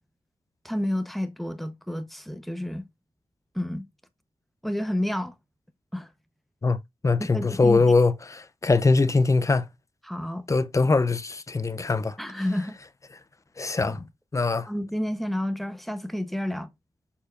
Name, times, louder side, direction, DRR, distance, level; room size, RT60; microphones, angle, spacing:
voice 1, 0.6-2.8 3.5-3.8 4.6-5.3 5.9-6.1 7.3-7.9 10.0-10.5 12.2-12.8 13.8-14.0 14.7-16.7, left 1 dB, ahead, 0.9 m, -30 dB
voice 2, 6.6-9.7 10.5-12.2 13.6-14.1 14.3-14.7, left 3 dB, 30° left, 0.6 m, -22 dB
7.0 x 6.9 x 2.5 m
wide cardioid pair, 140°, 10 cm